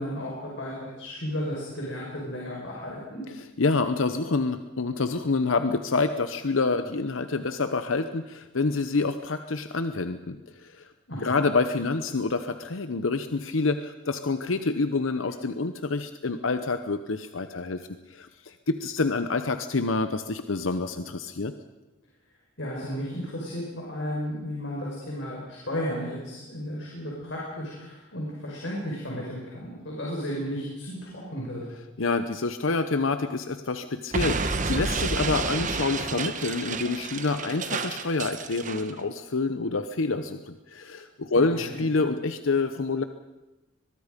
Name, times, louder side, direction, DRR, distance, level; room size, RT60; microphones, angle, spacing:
voice 1, 0.0-3.2 11.1-11.5 22.6-31.6 41.3-41.8, equal, 70° left, -3 dB, 5.2 m, -34 dB
voice 2, 3.3-10.9 11.2-21.5 32.0-43.0, left 3 dB, 90° left, 9 dB, 0.9 m, -27 dB
Explosion, 34.1-38.9, right 4 dB, 40° right, 1.2 m, -30 dB
23.0 x 22.0 x 5.2 m, 1.1 s
head